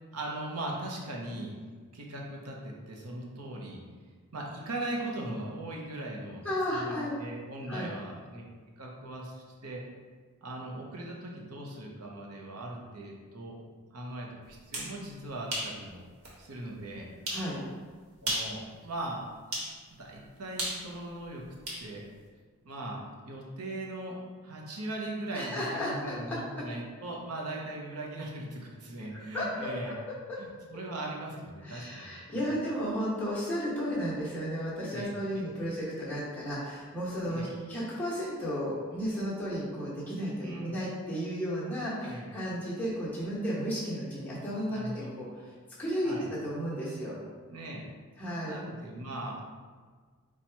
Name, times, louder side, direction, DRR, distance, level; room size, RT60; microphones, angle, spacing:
voice 1, 0.1-1.5 1.9-3.8 4.3-6.4 6.7-8.4 8.8-9.8 10.4-13.6 13.9-16.0 16.4-17.1 18.2-19.2 19.5-19.6 20.0-21.4 21.8-22.0 22.6-24.1 24.4-29.9 30.4-32.5 34.9-35.4 37.3-37.5 40.4-40.7 42.0-42.3 44.7-45.1 46.0-46.3 47.5-47.9 48.4-49.4, right 1 dB, 90° right, -1 dB, 0.8 m, -39 dB
voice 2, 6.4-7.1 7.7-7.9 17.3-17.6 25.3-26.1 29.3-29.9 30.3-30.4 31.6-45.3 45.8-47.1 48.2-48.6, equal, 10° left, -9 dB, 1.1 m, -33 dB
sound 1, 14.5-14.9 15.5-15.7 16.2-16.3 17.3-17.5 18.2-18.6 19.5-19.7 20.6-21.8, right 1 dB, 70° right, 1.2 m, -33 dB
4.3 x 2.4 x 4.4 m, 1.5 s
head